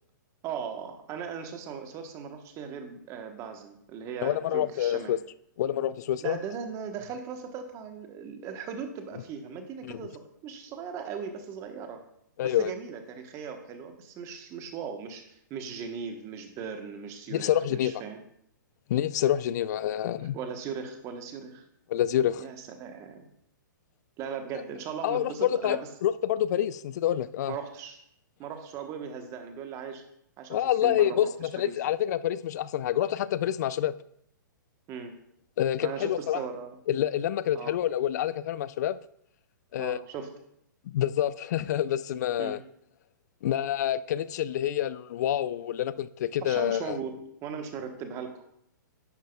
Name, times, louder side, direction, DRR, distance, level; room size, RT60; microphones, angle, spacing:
voice 1, 0.4-5.2 6.2-12.0 12.4-18.2 20.3-21.7 22.4-23.3 24.2-25.9 27.5-28.0 28.4-30.0 30.4-31.7 34.9-35.1 35.8-36.8 37.5-37.7 39.8-40.3 42.4-42.6 46.4-47.1 47.4-48.4, right 6 dB, 30° right, 1.1 m, -38 dB
voice 2, 4.2-5.2 5.6-6.4 9.8-10.0 12.4-12.7 17.3-17.9 18.9-20.4 21.9-22.5 25.0-27.5 30.5-33.9 35.6-36.4 36.9-39.0 39.7-40.0 40.9-42.6 43.4-47.0, left 11 dB, 55° left, 0.3 m, -27 dB
11.0 x 7.4 x 2.3 m
hypercardioid pair, 135°, 11 cm